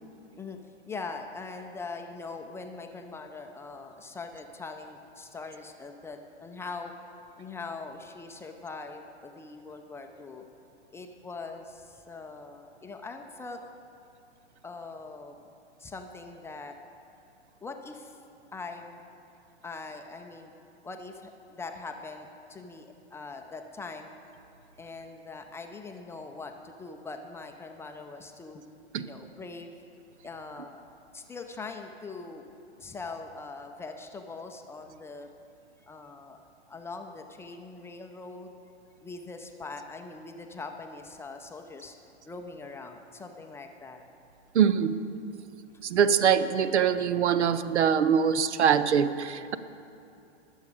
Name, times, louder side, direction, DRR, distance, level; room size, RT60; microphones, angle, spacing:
voice 1, 0.9-6.9 7.4-10.5 10.9-13.6 14.6-15.4 15.8-16.7 17.6-18.1 18.5-19.1 19.6-20.5 20.8-24.1 24.8-28.6 29.0-29.7 30.2-30.8 31.1-32.5 32.8-35.3 35.8-36.4 36.7-38.5 39.0-42.0 42.3-44.0 45.6-45.7, left 3 dB, 10° left, 4 dB, 0.4 m, -42 dB
voice 2, 44.5-45.0 45.8-49.6, right 8 dB, 90° right, 14 dB, 0.7 m, -23 dB
20.5 x 7.2 x 4.9 m, 2.7 s
hypercardioid pair, 125°, 33 cm